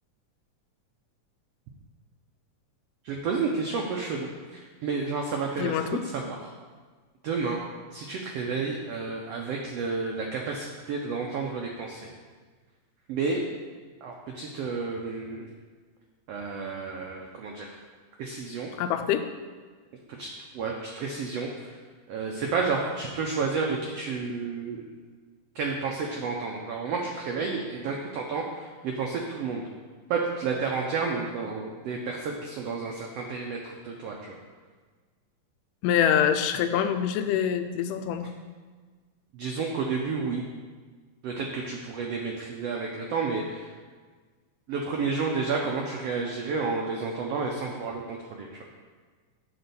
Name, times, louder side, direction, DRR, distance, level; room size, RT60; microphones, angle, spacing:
voice 1, 3.0-6.5 7.2-7.6 7.9-12.1 13.1-13.4 14.0-15.5 16.3-17.7 18.2-18.7 20.2-21.8 22.1-24.9 25.5-29.6 30.1-34.4 39.3-40.4 41.2-43.7 44.7-48.6, right 4 dB, 85° right, 0 dB, 1.4 m, -31 dB
voice 2, 5.6-6.0 18.8-19.3 35.8-38.3, left 9 dB, 85° left, 8 dB, 2.1 m, -25 dB
8.6 x 3.9 x 6.8 m, 1.5 s
omnidirectional pair, 3.8 m